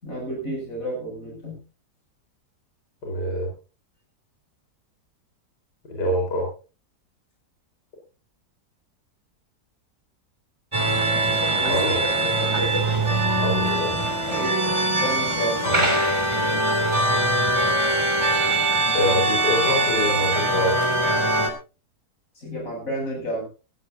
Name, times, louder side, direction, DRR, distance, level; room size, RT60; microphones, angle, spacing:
voice 1, 0.0-1.6 11.5-11.9 12.2-13.0 14.3-15.8 22.3-23.5, right 1 dB, 55° left, 0 dB, 8.2 m, -31 dB
voice 2, 3.0-3.5 5.9-6.5 11.6-12.0 13.4-13.9 15.6-16.2 18.8-20.8, left 1 dB, 80° left, -1 dB, 4.9 m, -25 dB
sound 1, 10.7-21.5, right 1 dB, 15° right, 2.6 m, -22 dB
17.0 x 16.5 x 2.7 m, 0.32 s
omnidirectional pair, 1.7 m